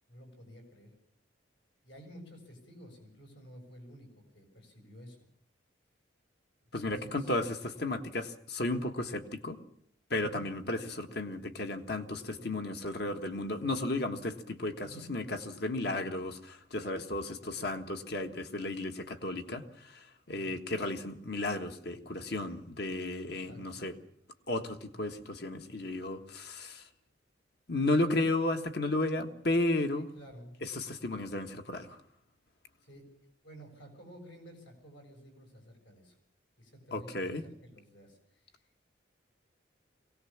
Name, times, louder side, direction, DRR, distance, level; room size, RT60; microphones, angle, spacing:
voice 1, 0.1-0.9 1.8-5.2 6.8-7.3 10.2-10.5 14.8-15.1 20.3-20.6 23.4-23.8 30.0-30.6 32.8-33.1 33.4-36.2 36.6-38.6, equal, 75° left, 3 dB, 7.1 m, -52 dB
voice 2, 6.7-9.6 10.1-23.9 24.5-26.8 27.7-30.1 30.6-32.0 36.9-37.4, left 2 dB, 55° left, 7 dB, 1.5 m, -34 dB
22.5 x 18.0 x 7.3 m, 0.68 s
head